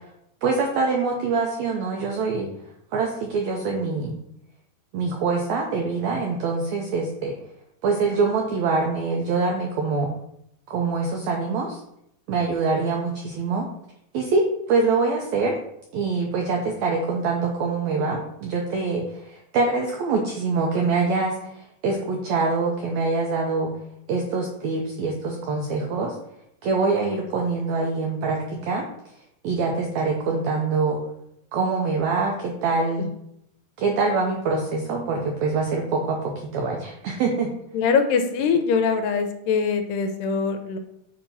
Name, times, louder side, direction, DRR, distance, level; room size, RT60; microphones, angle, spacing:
voice 1, 0.4-2.5 2.9-4.1 4.9-7.3 7.8-10.1 10.7-11.8 12.3-13.7 14.1-14.4 14.7-15.6 15.9-23.7 24.1-26.1 26.6-28.8 29.4-31.0 31.5-33.1 33.8-37.5, right 4 dB, 85° right, 1 dB, 1.6 m, -24 dB
voice 2, 37.7-40.8, left 5 dB, 80° left, 7 dB, 2.1 m, -22 dB
7.0 x 2.8 x 5.4 m, 0.76 s
omnidirectional pair, 4.0 m